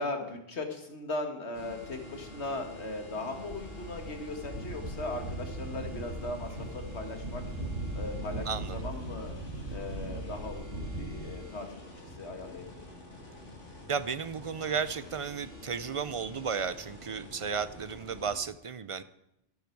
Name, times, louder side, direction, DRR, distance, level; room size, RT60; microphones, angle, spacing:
voice 1, 0.0-7.4 7.9-9.4 9.7-12.9, left 2 dB, 65° left, 5 dB, 2.1 m, -38 dB
sound 1, 1.5-18.4, left 1 dB, 90° left, 2.5 m, -48 dB
sound 2, 3.5-11.3, right 2 dB, 75° right, 3.9 m, -39 dB
voice 2, 8.5-8.8 13.9-19.0, right 6 dB, 45° right, 14 dB, 0.4 m, -34 dB
13.5 x 12.5 x 4.6 m, 0.83 s
omnidirectional pair, 1.2 m